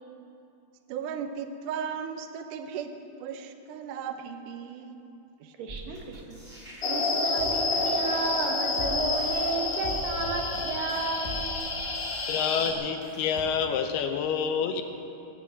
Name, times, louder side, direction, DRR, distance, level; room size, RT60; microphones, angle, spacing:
voice 1, 0.9-2.9 3.2-5.1 5.4-5.5 5.9-6.0, right 7 dB, 80° right, 7 dB, 1.9 m, -36 dB
voice 2, 5.6-6.4 6.8-11.4, right 3 dB, 65° right, 2 dB, 2.8 m, -33 dB
sound 1, 5.7-13.4, equal, 20° right, 4.8 m, -42 dB
sound 2, 6.8-12.7, left 3 dB, 45° left, 1.6 m, -29 dB
voice 3, 12.3-14.8, left 7 dB, 80° left, 6 dB, 2.7 m, -28 dB
18.5 x 9.5 x 7.8 m, 2.8 s
omnidirectional pair, 4.8 m